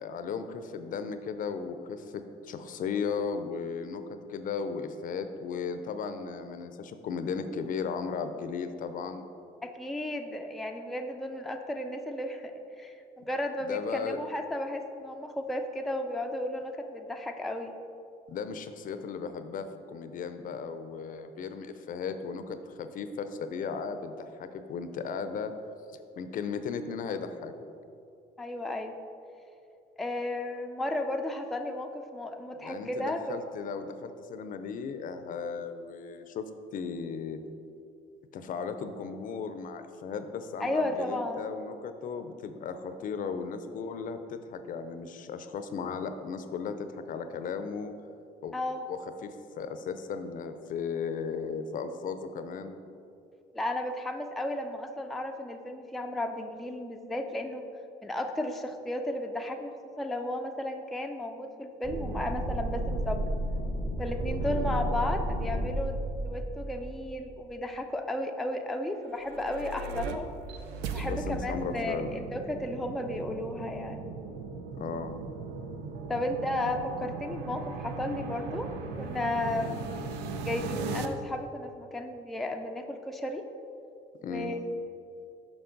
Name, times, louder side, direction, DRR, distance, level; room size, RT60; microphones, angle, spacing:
voice 1, 0.0-4.0 4.3-9.3 13.6-14.2 18.3-25.5 26.1-27.5 32.5-36.4 36.7-37.4 38.3-47.9 48.4-48.5 48.9-52.8 64.4-64.7 71.0-72.2 74.7-75.2 79.6-79.8 84.2-84.5, left 5 dB, 55° left, 9 dB, 0.5 m, -36 dB
voice 2, 9.6-17.8 28.4-28.9 30.0-33.3 40.6-41.5 48.5-48.9 53.5-57.6 58.0-63.3 64.0-70.3 70.9-74.0 76.1-78.7 79.0-79.8 80.4-83.5 84.3-84.8, left 1 dB, ahead, 3 dB, 0.4 m, -34 dB
sound 1, 61.8-67.2, right 1 dB, 45° right, 1.5 m, -32 dB
sound 2, 69.0-81.1, right 4 dB, 90° right, 0.5 m, -38 dB
6.9 x 5.4 x 3.9 m, 2.6 s
cardioid pair, 110°, 17 cm